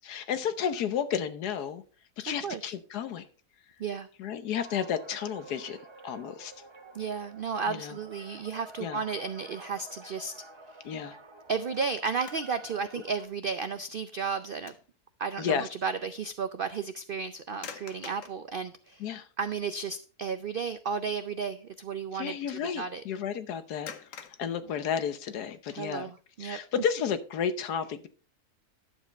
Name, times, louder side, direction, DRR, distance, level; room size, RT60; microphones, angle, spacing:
voice 1, 0.0-1.8 2.2-3.3 4.2-6.5 7.7-8.0 8.8-9.0 10.8-11.2 15.4-15.7 19.0-19.3 22.1-26.1 26.4-28.1, left 8 dB, 85° left, 11 dB, 1.5 m, -32 dB
sound 1, 4.6-13.3, right 3 dB, 25° right, 0.6 m, -50 dB
voice 2, 6.9-10.3 11.5-14.7 15.2-19.0 19.4-23.0 25.7-26.6, right 5 dB, 80° right, 11 dB, 0.4 m, -33 dB
sound 2, 11.6-12.7 13.2-13.4 13.9-15.0 15.3-15.5 17.5-18.5 19.3-19.4 19.8-20.1 20.4-20.6 23.9-25.5, left 7 dB, 60° left, 1.2 m, -47 dB
11.0 x 7.3 x 4.1 m, 0.38 s
omnidirectional pair, 1.6 m